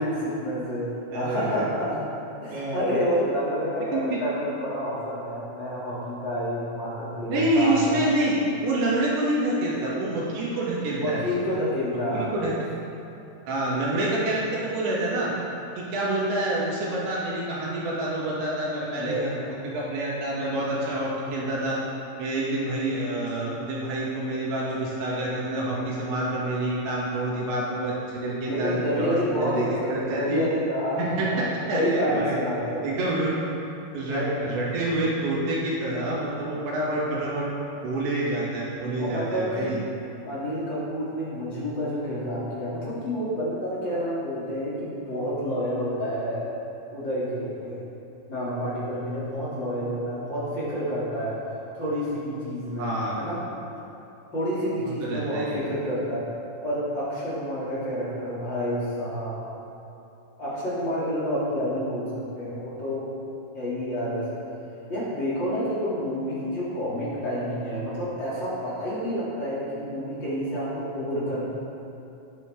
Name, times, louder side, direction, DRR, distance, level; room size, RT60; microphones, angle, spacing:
voice 1, 0.0-2.0 2.4-8.0 10.9-12.3 18.9-19.5 28.4-31.4 31.7-32.8 34.1-34.4 38.9-39.7 40.2-46.5 46.9-47.8 48.3-52.9 53.2-53.4 54.3-56.3 56.6-59.4 60.4-63.0 63.5-64.4 64.9-71.5, equal, 30° left, -10 dB, 3.1 m, -29 dB
voice 2, 1.1-1.6 2.5-2.8 3.9-4.2 7.3-8.4 8.6-11.5 12.1-12.5 13.5-15.3 15.8-19.3 19.6-21.8 22.2-30.4 31.0-32.4 32.8-33.3 33.9-37.5 37.8-39.8 52.8-53.2 54.8-55.6, right 1 dB, 70° right, -6 dB, 4.7 m, -27 dB
18.5 x 8.2 x 3.8 m, 2.8 s
omnidirectional pair, 5.3 m